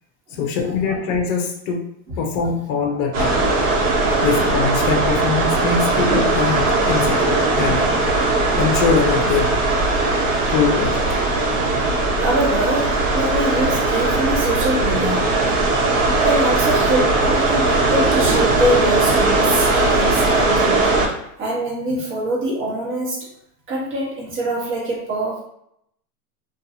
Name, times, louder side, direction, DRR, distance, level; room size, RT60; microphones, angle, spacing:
voice 1, 0.3-1.8 2.2-3.5 4.2-8.0 8.5-9.6 10.5-11.0, left 5 dB, 50° left, 2 dB, 0.6 m, -22 dB
sound 1, 3.1-21.1, right 2 dB, 60° right, 1.0 m, -19 dB
voice 2, 12.2-15.4 16.2-20.9 21.4-23.3 23.7-25.4, right 1 dB, 25° right, -4 dB, 1.0 m, -24 dB
2.6 x 2.3 x 2.6 m, 0.75 s
supercardioid pair, 130°, 46 cm